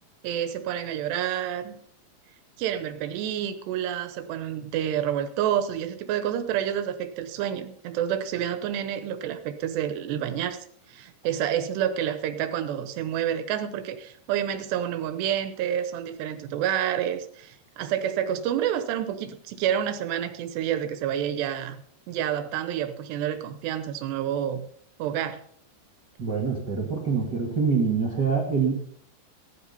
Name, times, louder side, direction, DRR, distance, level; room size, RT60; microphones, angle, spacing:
voice 1, 0.2-1.8 2.6-21.8 22.1-24.7 25.0-25.4, right 10 dB, 90° right, 8 dB, 3.2 m, -29 dB
voice 2, 26.2-28.8, right 5 dB, 40° right, 0 dB, 1.5 m, -25 dB
16.0 x 12.0 x 4.2 m, 0.62 s
omnidirectional pair, 4.7 m